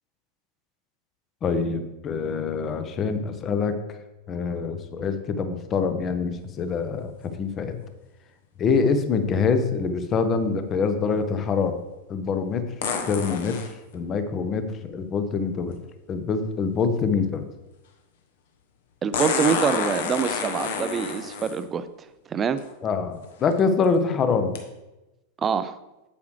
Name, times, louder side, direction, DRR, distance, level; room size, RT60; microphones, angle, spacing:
voice 1, 1.4-3.8 4.3-7.8 8.6-11.8 12.1-12.6 13.1-13.6 13.9-15.8 16.1-17.4 22.8-24.5, left 5 dB, 25° left, 9 dB, 0.8 m, -25 dB
sound 1, 6.4-6.5 12.8-13.7 15.7-15.8 19.1-21.6 22.6-22.7 23.3-23.6 24.5-24.6, left 5 dB, 55° left, 1.2 m, -28 dB
voice 2, 19.0-21.9 22.3-22.6 25.4-25.8, right 6 dB, 25° right, 13 dB, 0.5 m, -25 dB
8.4 x 8.1 x 3.2 m, 1.0 s
figure-of-eight pair, 90°, 0 cm